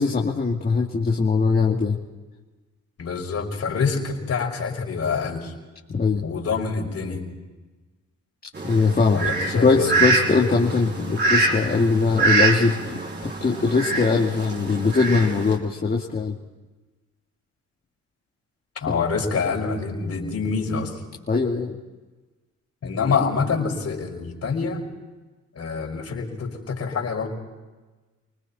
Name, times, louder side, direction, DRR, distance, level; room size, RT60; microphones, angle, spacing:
voice 1, 0.0-2.0 5.9-6.2 8.6-9.2 9.6-16.3 18.9-19.0 21.3-21.8, left 4 dB, 30° left, -1 dB, 2.5 m, -21 dB
voice 2, 3.0-5.5 6.2-7.2 9.1-9.9 18.8-21.0 22.8-24.8 25.5-27.3, left 5 dB, 55° left, 1 dB, 5.9 m, -26 dB
Fowl, 8.5-15.6, right 3 dB, 35° right, 4.9 m, -25 dB
29.5 x 20.0 x 4.4 m, 1.2 s
cardioid pair, 90°, 30 cm